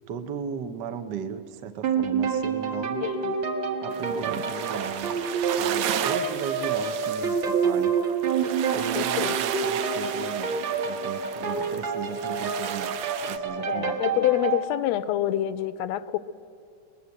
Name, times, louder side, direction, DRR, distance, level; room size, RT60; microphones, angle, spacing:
voice 1, 0.1-3.1 3.8-5.1 5.6-8.0 8.4-14.0, right 7 dB, 65° right, 8 dB, 1.1 m, -36 dB
sound 1, 1.8-14.6, right 5 dB, 45° right, 2.0 m, -28 dB
voice 2, 3.0-3.3 9.0-9.4 13.7-16.2, left 13 dB, 75° left, 15 dB, 1.8 m, -26 dB
sound 2, 3.9-13.4, right 10 dB, 80° right, 2.3 m, -34 dB
23.0 x 21.0 x 7.8 m, 2.7 s
omnidirectional pair, 3.3 m